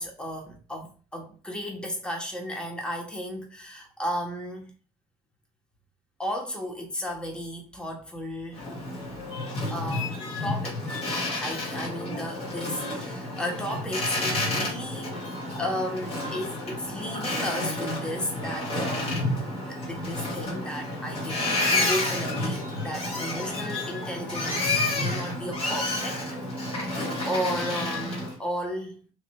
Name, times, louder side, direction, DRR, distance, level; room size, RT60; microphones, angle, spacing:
voice 1, 0.0-4.7 6.2-8.7 9.7-10.8 11.4-15.2 15.6-19.3 19.6-26.2 26.6-26.9 27.3-29.0, equal, 5° left, 1.2 m, -34 dB
Boat Water vehicle, 8.5-28.3, left 2 dB, 35° left, 2.5 m, -30 dB
5.9 x 3.1 x 2.3 m
cardioid pair, 110°, 17 cm